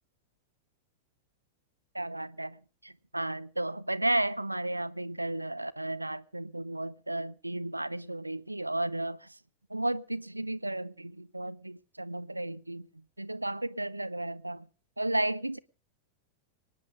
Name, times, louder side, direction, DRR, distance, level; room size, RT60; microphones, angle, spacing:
voice 1, 1.9-9.4 9.7-14.7 15.0-15.6, right 1 dB, 85° right, 0.7 m, -33 dB
24.5 x 10.5 x 5.0 m
figure-of-eight pair, 90°, 0 cm